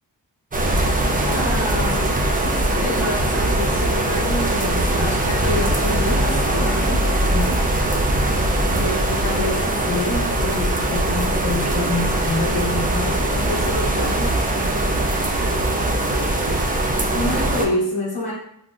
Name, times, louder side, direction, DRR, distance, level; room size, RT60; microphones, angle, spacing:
sound 1, 0.5-17.7, right 1 dB, 20° right, 0.4 m, -21 dB
voice 1, 1.2-2.2 2.4-7.7 8.7-14.4 16.6-18.3, left 2 dB, 60° left, -7 dB, 0.9 m, -27 dB
3.6 x 2.1 x 2.3 m, 0.76 s
cardioid pair, 50°, 45 cm